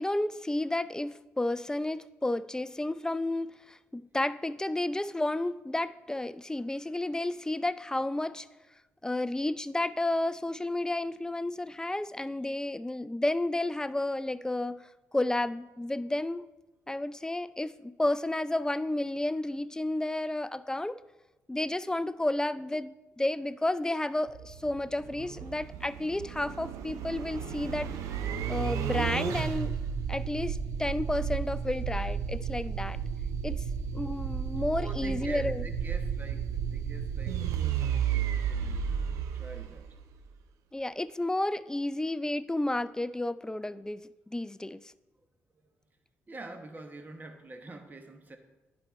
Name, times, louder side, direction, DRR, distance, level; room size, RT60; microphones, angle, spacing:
voice 1, 0.0-8.5 9.0-16.4 16.9-21.0 21.5-27.9 28.5-29.8 30.1-33.0 33.4-33.6 33.9-35.6 40.7-44.0 44.3-44.8, left 1 dB, 10° left, 0.3 m, -31 dB
sound 1, 24.3-40.3, right 8 dB, 80° right, 0.6 m, -33 dB
voice 2, 34.7-38.9 39.3-39.9 45.6-45.7 46.3-48.4, right 2 dB, 35° right, 1.2 m, -46 dB
10.5 x 4.3 x 4.5 m
supercardioid pair, 55°, 5 cm